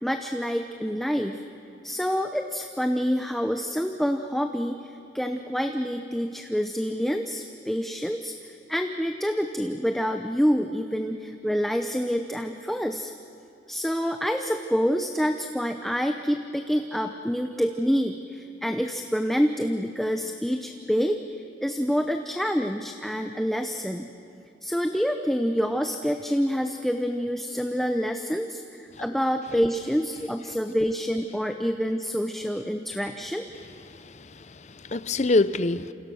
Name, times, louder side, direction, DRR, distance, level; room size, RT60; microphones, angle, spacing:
voice 1, 0.0-1.4 1.8-13.1 13.7-21.2 21.6-24.1 24.6-33.4, equal, ahead, 5 dB, 0.7 m, -27 dB
voice 2, 33.9-35.9, left 2 dB, 40° left, 14 dB, 0.6 m, -26 dB
28.5 x 28.0 x 6.3 m, 2.6 s
head